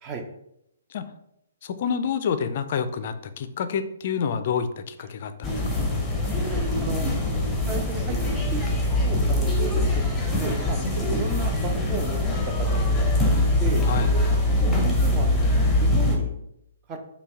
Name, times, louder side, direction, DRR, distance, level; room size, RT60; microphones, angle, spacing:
voice 1, 1.6-5.9 10.7-10.9 13.8-14.1, left 7 dB, 45° left, 10 dB, 0.4 m, -28 dB
sound 1, 5.4-16.2, left 1 dB, 5° left, 0.8 m, -23 dB
voice 2, 6.5-7.1 7.7-8.2 8.5-8.7 9.0-10.0 10.4-12.2 12.7-13.3 13.6-13.9 14.6-15.5 15.8-16.3 16.9-17.0, right 4 dB, 25° right, 4 dB, 0.6 m, -34 dB
5.4 x 2.2 x 3.5 m, 0.79 s
figure-of-eight pair, 125°, 0 cm